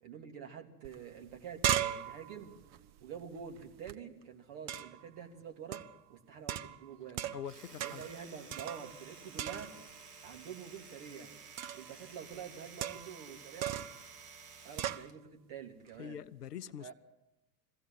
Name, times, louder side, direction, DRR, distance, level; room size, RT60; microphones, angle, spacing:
voice 1, 0.0-2.5 3.0-5.8 6.1-7.3 7.8-9.8 10.2-11.3 11.7-13.8 14.6-16.2 16.8-16.9, right 7 dB, 50° right, 3.1 m, -47 dB
sound 1, 0.8-0.9 1.2-3.9 4.7-5.1 5.7-6.0 6.5-7.5 7.8-8.2 8.5-9.1 9.4-10.0 11.6-11.9 12.8-13.2 13.6-14.0 14.8-15.1, right 11 dB, 35° right, 1.0 m, -37 dB
voice 2, 7.3-8.0 16.0-16.9, left 9 dB, 80° left, 0.7 m, -44 dB
Domestic sounds home sounds, 7.3-15.2, right 5 dB, 75° right, 1.5 m, -53 dB
22.5 x 16.0 x 7.5 m
figure-of-eight pair, 85°, 47 cm